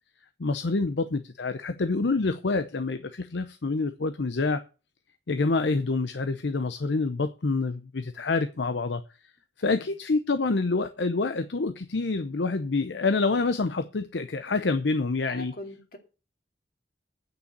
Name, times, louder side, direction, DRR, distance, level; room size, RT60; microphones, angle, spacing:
voice 1, 0.4-4.6 5.3-9.0 9.6-15.5, left 3 dB, 70° left, 0.7 m, -27 dB
voice 2, 15.2-16.0, left 1 dB, 50° left, 2.5 m, -42 dB
9.1 x 5.6 x 8.0 m
head